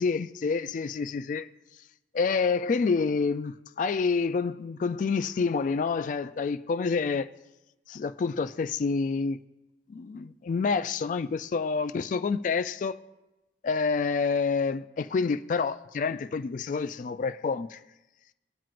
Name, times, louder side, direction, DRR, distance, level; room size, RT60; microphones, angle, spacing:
voice 1, 0.0-1.5 2.1-7.3 7.9-9.4 9.9-13.0 13.6-17.8, left 4 dB, 45° left, 0.3 m, -28 dB
19.5 x 7.5 x 2.5 m
head